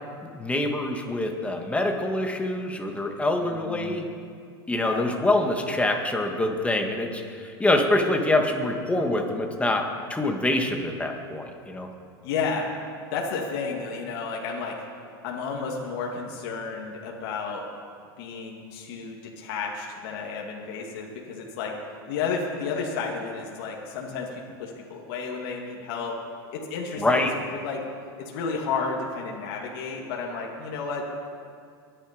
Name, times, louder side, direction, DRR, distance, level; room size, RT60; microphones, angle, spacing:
voice 1, 0.2-4.1 4.7-11.9 27.0-27.3, left 1 dB, 10° left, 3 dB, 2.0 m, -25 dB
voice 2, 3.4-4.0 4.7-5.1 12.2-12.7 13.1-14.8 15.2-17.6 18.2-21.7 22.1-26.2 26.5-27.8 28.2-31.1, left 5 dB, 65° left, -1 dB, 2.3 m, -32 dB
21.5 x 10.0 x 5.2 m, 2.3 s
hypercardioid pair, 105°, 13 cm